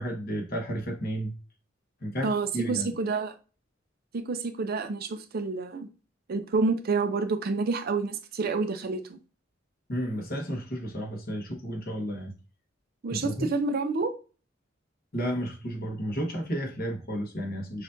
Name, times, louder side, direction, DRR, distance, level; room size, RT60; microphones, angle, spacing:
voice 1, 0.0-1.3 2.0-2.9 9.9-12.3 13.1-13.5 15.1-17.8, equal, 50° left, 1.1 m, -32 dB
voice 2, 2.2-3.3 4.1-5.9 6.3-9.2 13.0-14.1, right 4 dB, 50° right, 0.5 m, -28 dB
6.2 x 2.4 x 2.6 m
head